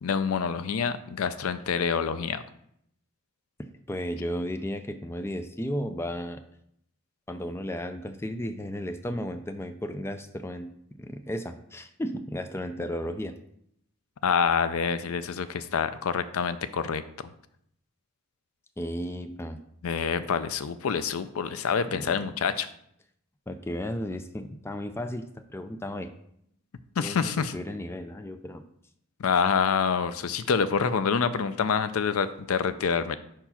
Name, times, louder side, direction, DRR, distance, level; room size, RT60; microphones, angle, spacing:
voice 1, 0.0-2.4 14.2-17.0 19.8-22.7 27.0-27.5 29.2-33.2, left 6 dB, 75° left, 13 dB, 0.5 m, -26 dB
voice 2, 3.6-6.4 7.3-10.7 11.0-13.3 18.8-19.6 21.9-22.2 23.5-26.1 27.0-28.6, equal, 10° left, 8 dB, 0.4 m, -34 dB
5.0 x 4.6 x 5.7 m, 0.71 s
head